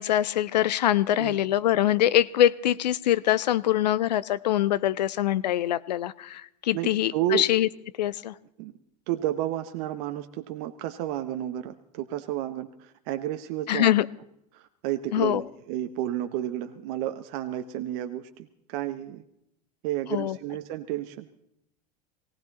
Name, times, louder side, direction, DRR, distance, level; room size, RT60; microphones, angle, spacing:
voice 1, 0.0-7.7 8.0-8.3 13.7-14.1 15.1-15.4 20.1-20.4, left 12 dB, 80° left, 18 dB, 0.7 m, -24 dB
voice 2, 6.7-7.4 8.6-8.7 9.1-13.9 14.5-19.2 19.8-21.3, right 12 dB, 60° right, 8 dB, 1.0 m, -31 dB
19.0 x 17.0 x 4.1 m, 0.78 s
hypercardioid pair, 90°, 21 cm